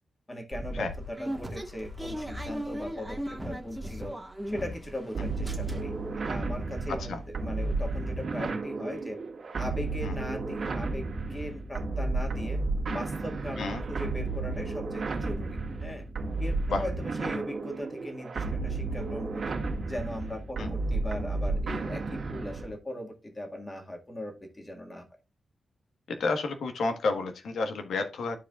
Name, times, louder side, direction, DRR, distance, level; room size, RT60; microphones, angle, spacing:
voice 1, 0.3-4.1 4.5-6.0 6.2-9.2 9.6-12.6 12.9-16.0 16.4-19.5 19.8-25.1, equal, 20° left, 2 dB, 1.8 m, -39 dB
sound 1, 0.5-5.0 5.3-6.1 6.5-6.6 6.8-7.0, equal, 5° right, 1.6 m, -37 dB
sound 2, 5.1-22.8, right 3 dB, 50° right, 1.8 m, -32 dB
voice 2, 6.9-7.2 10.0-10.1 13.6-13.9 16.7-16.8 20.6-20.7 26.1-28.4, left 3 dB, 85° left, 5 dB, 1.4 m, -30 dB
13.0 x 4.8 x 2.4 m, 0.28 s
wide cardioid pair, 130°, 0 cm